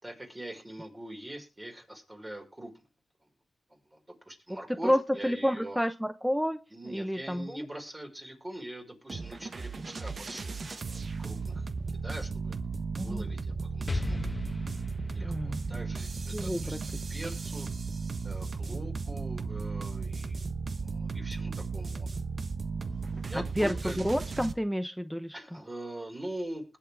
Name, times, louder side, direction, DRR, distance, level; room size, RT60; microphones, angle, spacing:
voice 1, 0.0-2.8 3.7-5.8 6.7-12.5 13.0-14.3 15.1-16.8 17.1-17.7 18.2-20.5 20.8-22.1 23.2-24.0 25.3-26.6, right 1 dB, 20° right, 2 dB, 5.5 m, -43 dB
voice 2, 4.8-6.6 6.9-7.7 13.0-13.2 15.2-15.8 16.3-16.8 23.6-25.4, equal, ahead, 11 dB, 0.8 m, -30 dB
sound 1, 9.1-24.5, right 4 dB, 50° right, 1.1 m, -35 dB
Explosion, 13.9-17.6, left 2 dB, 25° left, 1.2 m, -37 dB
20.5 x 8.7 x 3.6 m, 0.31 s
cardioid pair, 65°, 0 cm